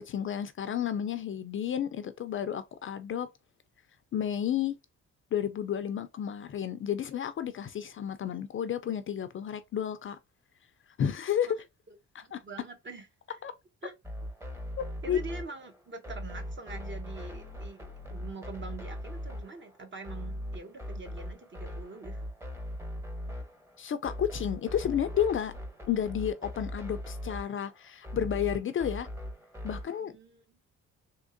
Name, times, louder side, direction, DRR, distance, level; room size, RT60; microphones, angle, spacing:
voice 1, 0.1-3.3 4.1-4.7 5.3-10.2 11.0-11.6 12.1-12.4 13.4-13.5 14.8-15.2 23.8-25.5 25.9-29.1 29.6-30.1, left 9 dB, 45° left, 0.4 m, -31 dB
voice 2, 12.2-13.4 13.8-13.9 15.0-22.2 30.0-30.6, right 3 dB, 40° right, 0.9 m, -45 dB
sound 1, 14.0-30.0, equal, 10° right, 0.9 m, -40 dB
3.6 x 2.8 x 2.6 m
cardioid pair, 90°, 30 cm